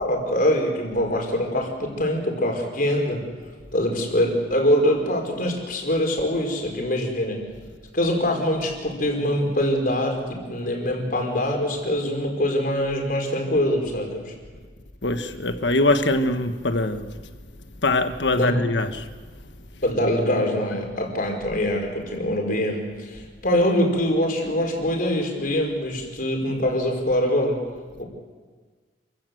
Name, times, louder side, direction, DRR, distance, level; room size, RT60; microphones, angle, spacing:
voice 1, 0.0-3.2 3.7-7.4 7.9-14.3 18.3-18.6 19.8-27.6 28.0-28.1, left 1 dB, 55° left, 5.0 m, -24 dB
voice 2, 15.0-17.3 17.8-19.1, left 2 dB, 85° left, 1.4 m, -23 dB
28.5 x 15.5 x 7.9 m
head